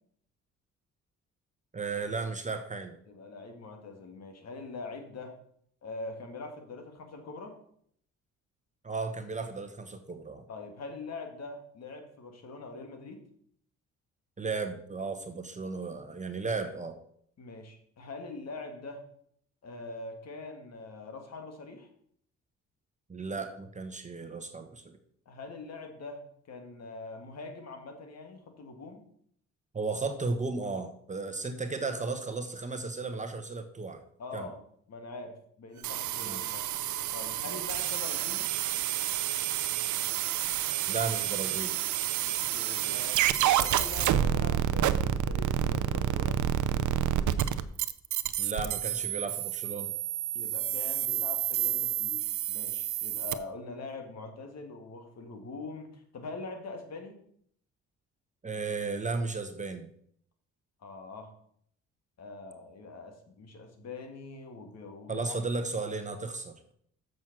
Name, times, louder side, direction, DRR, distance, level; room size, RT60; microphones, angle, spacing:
voice 1, 1.7-2.9 8.8-10.4 14.4-17.0 23.1-24.8 29.7-34.0 34.3-34.5 36.2-36.4 37.4-37.6 40.9-41.8 48.4-49.9 58.4-59.9 65.1-66.7, right 4 dB, 25° right, 6 dB, 1.0 m, -34 dB
voice 2, 3.1-5.4 5.8-7.6 10.5-13.2 17.4-19.1 19.6-21.9 25.3-29.0 34.2-34.6 34.9-36.6 37.1-38.5 42.3-46.4 50.3-57.2 60.8-61.3 62.2-65.4, left 3 dB, 60° left, 5 dB, 2.1 m, -43 dB
sound 1, 35.8-53.3, right 11 dB, 75° right, 0.6 m, -29 dB
7.2 x 6.3 x 6.1 m, 0.65 s
cardioid pair, 90°, 30 cm